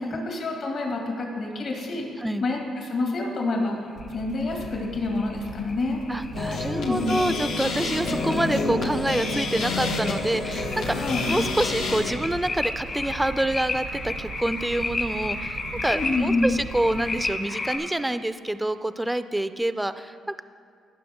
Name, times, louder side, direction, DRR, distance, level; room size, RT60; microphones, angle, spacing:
voice 1, 0.0-2.1 2.4-3.7 4.1-6.0 6.7-7.2 10.9-11.3 15.9-16.5, left 2 dB, 60° left, 0 dB, 2.0 m, -27 dB
voice 2, 2.2-2.5 6.1-11.0 11.3-20.4, right 1 dB, 10° right, 12 dB, 0.3 m, -27 dB
sound 1, 4.0-17.8, left 3 dB, 45° left, 1.2 m, -34 dB
sound 2, 4.0-17.3, right 6 dB, 65° right, 0.5 m, -41 dB
sound 3, 6.3-12.1, left 3 dB, 80° left, 0.9 m, -28 dB
16.0 x 5.8 x 3.6 m, 2.2 s
cardioid pair, 90°, 0 cm